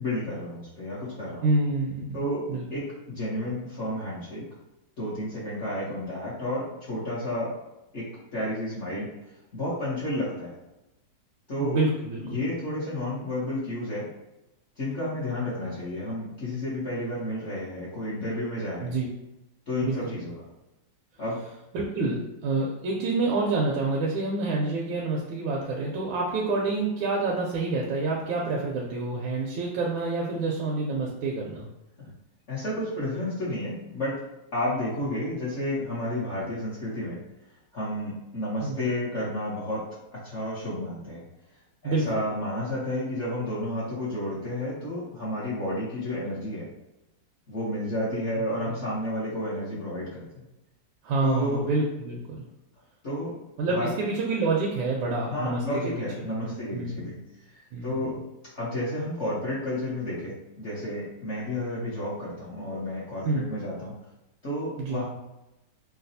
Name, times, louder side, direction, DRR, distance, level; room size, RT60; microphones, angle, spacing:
voice 1, 0.0-1.4 2.1-4.4 5.0-7.5 7.9-8.0 8.3-9.1 9.5-10.5 11.5-11.8 12.3-14.1 14.8-18.9 19.7-20.3 21.2-21.4 32.0-32.1 32.5-34.1 34.5-37.2 37.7-39.8 40.2-41.2 41.8-46.6 47.5-50.3 51.2-51.6 53.0-53.4 53.7-53.9 55.3-57.1 57.5-58.2 58.6-63.9 64.4-65.0, left 1 dB, 45° left, -10 dB, 1.0 m, -31 dB
voice 2, 1.4-2.2 2.5-2.6 11.6-12.4 18.8-19.1 19.8-20.2 21.7-31.7 38.6-38.8 41.8-42.2 51.0-52.4 53.6-55.9 56.4-57.0 57.7-58.0 63.2-63.5 64.8-65.0, right 3 dB, 85° right, -3 dB, 1.4 m, -27 dB
4.0 x 2.3 x 2.6 m, 0.95 s
omnidirectional pair, 2.1 m